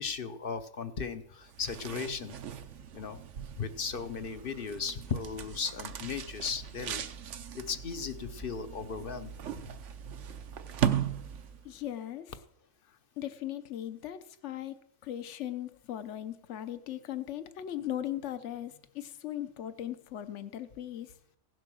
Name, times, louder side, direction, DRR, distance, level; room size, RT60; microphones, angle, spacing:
voice 1, 0.0-2.4 2.9-3.2 3.6-7.0 7.5-9.3, left 6 dB, 50° left, 10 dB, 0.8 m, -36 dB
sound 1, 1.4-11.8, right 9 dB, 75° right, 1.1 m, -38 dB
voice 2, 11.6-12.3 12.9-21.1, left 11 dB, 70° left, 12 dB, 1.1 m, -38 dB
16.0 x 7.6 x 6.3 m, 0.74 s
omnidirectional pair, 1.3 m